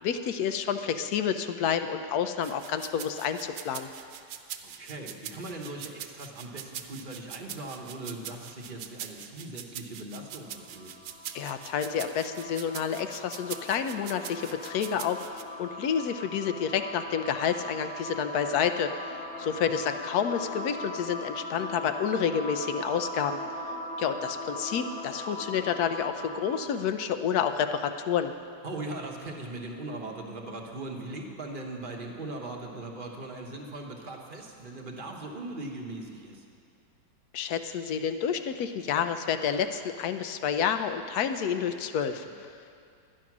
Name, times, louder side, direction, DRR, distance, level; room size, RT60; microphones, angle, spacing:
voice 1, 0.0-3.9 11.3-23.4 24.0-28.3 37.3-42.3, left 7 dB, 70° left, 9 dB, 1.0 m, -29 dB
sound 1, 2.4-15.4, right 10 dB, 75° right, 1.3 m, -43 dB
voice 2, 4.6-10.9 19.3-19.8 28.6-36.4 42.2-42.3, right 2 dB, 35° right, 1 dB, 1.0 m, -40 dB
sound 2, 10.2-26.8, left 1 dB, 45° left, 1.2 m, -40 dB
12.0 x 10.0 x 6.0 m, 2.4 s
omnidirectional pair, 2.0 m